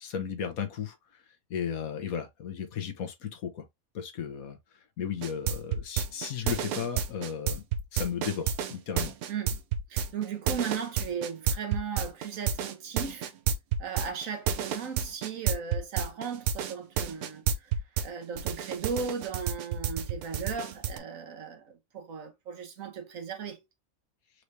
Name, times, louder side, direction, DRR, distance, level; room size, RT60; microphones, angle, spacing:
voice 1, 0.0-1.0 1.5-3.7 3.9-4.6 5.0-7.6 7.9-9.1, left 8 dB, 80° left, 1.4 m, -35 dB
sound 1, 5.2-18.1 18.4-21.0, right 8 dB, 85° right, 1.2 m, -30 dB
voice 2, 9.3-9.6 9.9-13.3 13.8-17.8 18.0-23.6, right 6 dB, 70° right, 1.4 m, -36 dB
4.7 x 3.2 x 2.7 m
omnidirectional pair, 1.5 m